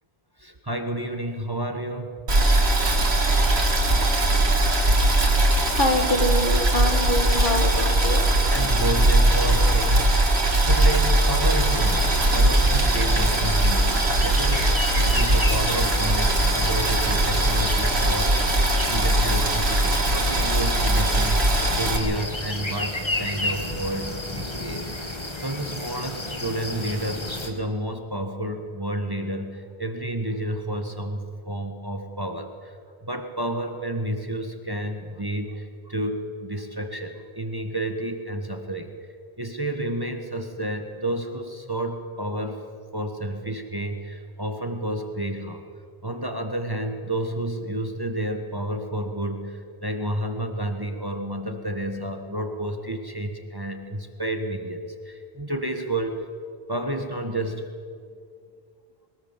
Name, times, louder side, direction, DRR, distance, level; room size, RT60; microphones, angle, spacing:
voice 1, 0.4-2.1 8.5-14.7 15.0-18.4 18.9-21.5 21.8-24.9 25.4-32.7 33.0-38.9 39.4-42.6 42.9-45.6 46.0-56.2 56.7-57.7, right 1 dB, 20° right, 5 dB, 1.4 m, -30 dB
Boiling, 2.3-22.0, right 1 dB, 85° right, 2.4 m, -20 dB
voice 2, 5.7-8.2, left 1 dB, 55° left, 4 dB, 2.1 m, -25 dB
sound 1, 11.6-27.5, left 1 dB, 25° left, 1.9 m, -32 dB
22.0 x 19.0 x 7.3 m, 2.2 s
omnidirectional pair, 1.0 m